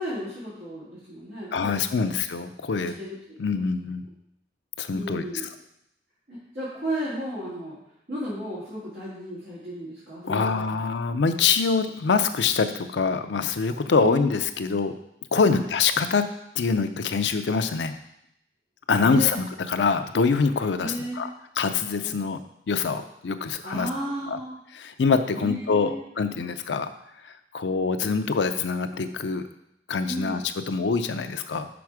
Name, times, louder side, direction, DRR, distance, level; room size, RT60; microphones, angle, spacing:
voice 1, 0.0-2.1 2.8-3.2 3.5-3.9 4.9-5.5 6.3-7.8 8.1-10.8 14.0-14.3 15.4-15.6 19.0-19.4 20.8-21.3 22.0-22.1 23.6-24.6 25.3-26.0 30.0-30.4, equal, 65° right, -11 dB, 2.5 m, -34 dB
voice 2, 1.5-2.9 3.4-4.1 4.8-5.2 10.2-14.9 15.3-16.3 16.6-17.9 18.9-21.3 21.6-22.4 22.7-23.9 24.3-24.4 24.7-26.9 27.2-29.4 29.9-31.7, left 5 dB, 85° left, 9 dB, 0.5 m, -24 dB
6.1 x 4.3 x 4.7 m, 0.78 s
head